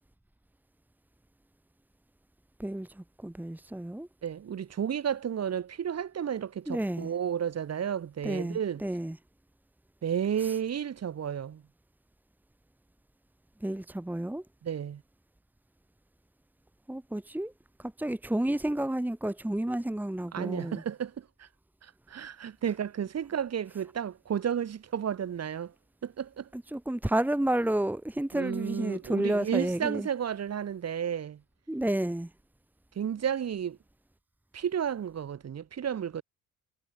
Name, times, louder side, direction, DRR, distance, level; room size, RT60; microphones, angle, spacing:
voice 1, 2.6-4.1 6.7-7.1 8.2-9.2 10.4-10.6 13.6-14.4 16.9-17.5 17.8-20.8 26.5-30.1 31.7-32.3, right 1 dB, 5° right, 1.9 m, -31 dB
voice 2, 4.2-8.8 10.0-11.6 14.6-15.0 20.3-21.5 21.8-25.7 26.0-26.5 28.3-31.4 33.0-33.8 34.5-36.2, right 8 dB, 55° right, 7.9 m, -32 dB
cardioid pair, 90°, 30 cm